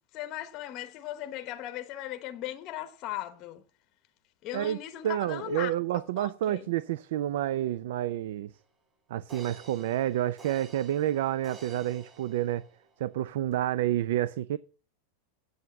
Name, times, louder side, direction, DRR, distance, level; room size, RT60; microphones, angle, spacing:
voice 1, 0.1-3.6 4.4-5.7 6.2-6.7, left 13 dB, 30° left, 0.9 m, -38 dB
voice 2, 5.0-8.5 9.1-12.6 13.0-14.6, right 12 dB, 65° right, 0.5 m, -29 dB
sound 1, 8.6-8.7 9.3-13.0 13.5-13.6, right 3 dB, 15° right, 3.0 m, -51 dB
7.9 x 7.8 x 8.3 m
supercardioid pair, 170°, 0 cm